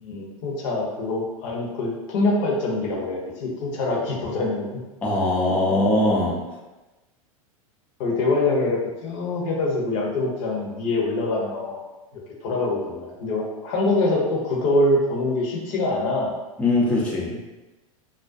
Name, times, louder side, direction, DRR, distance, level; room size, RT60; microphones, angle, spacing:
voice 1, 0.0-4.7 8.0-11.8 12.4-16.3, left 2 dB, 60° left, -2 dB, 0.7 m, -24 dB
voice 2, 5.0-6.6 16.6-17.4, left 1 dB, 5° left, -5 dB, 0.4 m, -21 dB
2.4 x 2.1 x 2.4 m, 1.1 s
hypercardioid pair, 95°, 19 cm